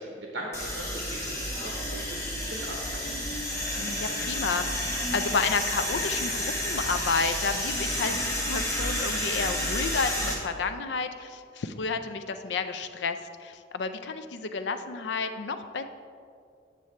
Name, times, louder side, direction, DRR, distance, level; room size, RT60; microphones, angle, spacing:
voice 1, 0.0-3.1, right 1 dB, 65° right, -2 dB, 1.0 m, -39 dB
sound 1, 0.5-10.3, left 1 dB, 15° left, 1.3 m, -31 dB
voice 2, 3.8-15.8, left 4 dB, 70° left, 9 dB, 0.4 m, -31 dB
8.7 x 6.8 x 3.2 m, 2.3 s
head